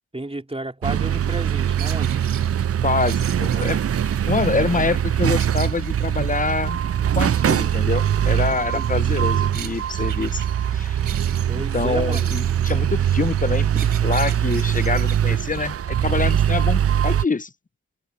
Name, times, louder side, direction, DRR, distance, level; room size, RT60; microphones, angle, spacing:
voice 1, 0.1-2.1 8.7-9.0 11.5-12.3 13.7-13.9, right 2 dB, 20° right, 3.9 m, -32 dB
sound 1, 0.8-17.2, right 9 dB, 45° right, 0.5 m, -22 dB
sound 2, 1.0-15.8, right 8 dB, 90° right, 4.0 m, -41 dB
voice 2, 2.8-3.8 4.3-6.8 7.2-10.4 10.7-11.0 11.5-13.7 14.0-15.8 16.0-17.5, left 4 dB, 25° left, 0.7 m, -25 dB
cardioid pair, 50°, 33 cm